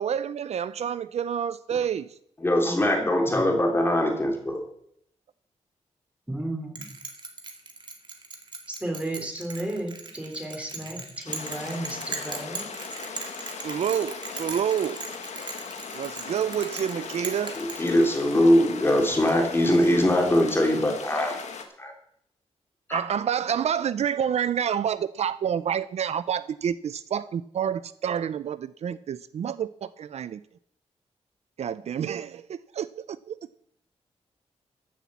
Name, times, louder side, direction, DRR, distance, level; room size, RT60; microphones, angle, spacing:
voice 1, 0.0-2.1 13.6-15.0 15.9-17.6 22.9-30.4 31.6-33.4, right 8 dB, 70° right, 0.5 m, -28 dB
voice 2, 2.4-4.6 17.6-21.4 21.8-21.9 22.9-23.0, left 1 dB, 20° left, 3.2 m, -22 dB
voice 3, 6.3-6.9 8.7-12.7, right 1 dB, 10° right, 3.7 m, -34 dB
Bell, 6.7-18.4, right 4 dB, 45° right, 2.0 m, -39 dB
sound 1, 11.3-21.7, left 5 dB, 80° left, 1.7 m, -39 dB
14.0 x 7.1 x 7.4 m
wide cardioid pair, 115°, 11 cm